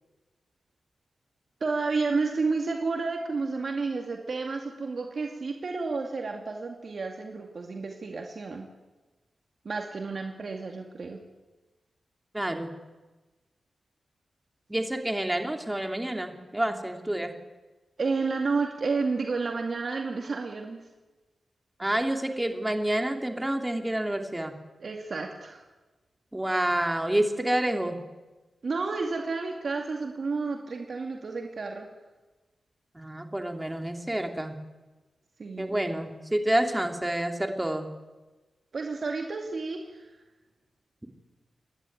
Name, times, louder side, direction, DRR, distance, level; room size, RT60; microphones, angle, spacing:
voice 1, 1.6-8.7 9.6-11.2 18.0-20.8 24.8-25.6 28.6-31.9 35.4-35.8 38.7-40.1, right 4 dB, 60° right, 2 dB, 2.2 m, -31 dB
voice 2, 12.3-12.7 14.7-17.3 21.8-24.5 26.3-28.0 32.9-34.5 35.6-37.9, right 1 dB, 15° right, 4 dB, 2.8 m, -28 dB
27.0 x 11.0 x 9.5 m, 1.2 s
cardioid pair, 65°, 0 cm